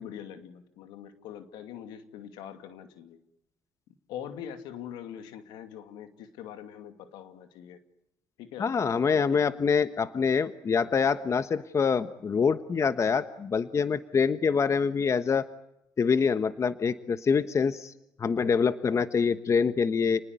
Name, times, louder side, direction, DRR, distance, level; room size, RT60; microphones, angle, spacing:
voice 1, 0.0-3.2 4.1-7.8 8.4-8.7 9.3-9.4, left 9 dB, 85° left, 8 dB, 2.5 m, -43 dB
voice 2, 8.6-15.4 16.0-17.9 18.2-20.2, left 5 dB, 40° left, 12 dB, 1.2 m, -25 dB
30.0 x 20.0 x 9.7 m, 0.83 s
supercardioid pair, 70°, 7 cm